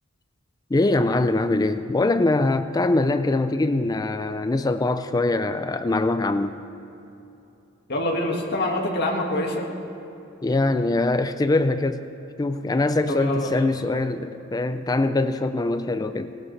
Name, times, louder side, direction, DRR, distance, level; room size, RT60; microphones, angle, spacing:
voice 1, 0.7-6.6 10.4-12.0 12.4-16.3, left 2 dB, 20° left, 10 dB, 0.4 m, -23 dB
voice 2, 7.9-9.6 13.1-13.8, left 1 dB, 50° left, -1 dB, 1.8 m, -25 dB
19.5 x 17.5 x 3.2 m, 2.9 s
head